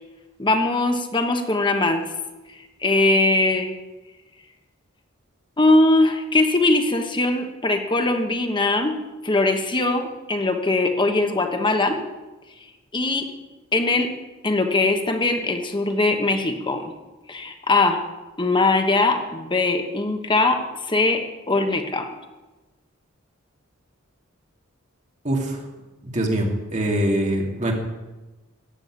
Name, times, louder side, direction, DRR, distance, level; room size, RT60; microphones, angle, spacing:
voice 1, 0.4-2.0 2.8-3.7 5.6-9.0 9.2-12.0 12.9-13.3 13.7-14.1 14.4-16.9 17.3-18.0 18.4-20.6 20.9-22.1, left 2 dB, 25° left, 5 dB, 1.2 m, -21 dB
voice 2, 25.2-25.6 26.1-27.7, right 1 dB, 35° right, 0 dB, 2.8 m, -23 dB
15.0 x 7.7 x 9.3 m, 1.1 s
head